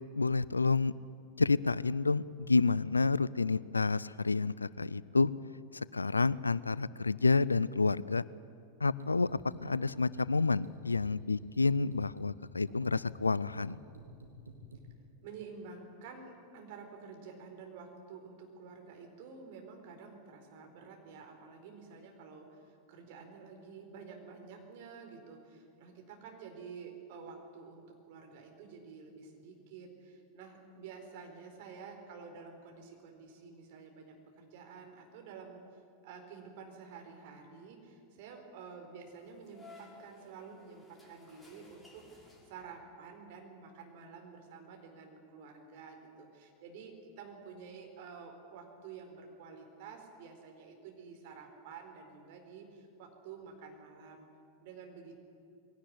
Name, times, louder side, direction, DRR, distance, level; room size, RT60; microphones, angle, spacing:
voice 1, 0.2-0.9 1.4-5.3 5.7-8.2 8.8-13.8, left 3 dB, 80° left, 20 dB, 0.5 m, -29 dB
sound 1, 9.0-14.8, right 1 dB, 75° right, 2.7 m, -51 dB
voice 2, 15.2-35.6 36.0-54.3 54.6-55.2, right 5 dB, 50° right, 3 dB, 4.4 m, -50 dB
sound 2, 39.0-42.9, left 2 dB, 5° left, 4.5 m, -58 dB
21.0 x 17.5 x 9.8 m, 2.5 s
figure-of-eight pair, 90°, 0 cm